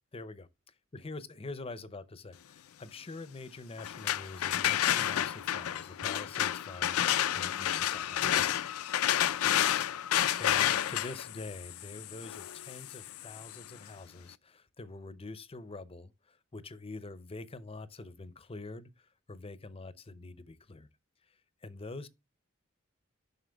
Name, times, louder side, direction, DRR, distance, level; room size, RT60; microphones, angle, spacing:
voice 1, 0.1-0.5 0.9-8.5 10.4-20.9 21.2-22.1, left 3 dB, 25° left, 0.6 m, -45 dB
sound 1, 3.8-13.6, left 11 dB, 90° left, 0.4 m, -30 dB
7.7 x 5.7 x 3.4 m
head